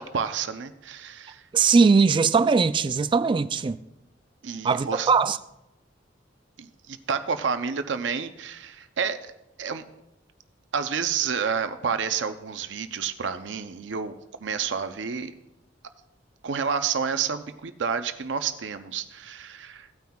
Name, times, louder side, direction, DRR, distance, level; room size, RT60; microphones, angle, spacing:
voice 1, 0.0-1.4 4.4-5.1 6.6-9.3 9.6-9.8 10.7-15.3 16.4-19.9, right 6 dB, 70° right, 0.6 m, -29 dB
voice 2, 1.5-3.8 4.6-5.4, right 5 dB, 25° right, 0.3 m, -20 dB
16.5 x 9.2 x 2.3 m
head